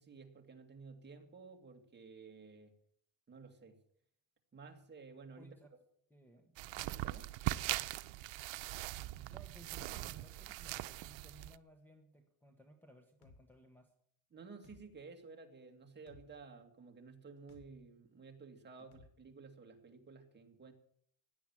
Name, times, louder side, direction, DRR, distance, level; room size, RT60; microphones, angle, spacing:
voice 1, 0.0-2.8 3.3-3.8 4.5-5.6 6.8-7.3 14.3-20.7, right 4 dB, 25° right, 3 dB, 2.3 m, -54 dB
voice 2, 5.4-5.7 6.1-6.6 9.0-13.9 18.8-18.9, right 1 dB, 5° left, 1 dB, 1.3 m, -61 dB
sound 1, 6.6-11.6, right 16 dB, 85° right, 0.8 m, -41 dB
sound 2, 13.2-13.4 14.6-14.8 16.1-16.3 17.5-17.7 18.9-19.1, left 3 dB, 60° left, 2.9 m, -59 dB
17.0 x 10.5 x 7.4 m, 0.67 s
cardioid pair, 160°, 44 cm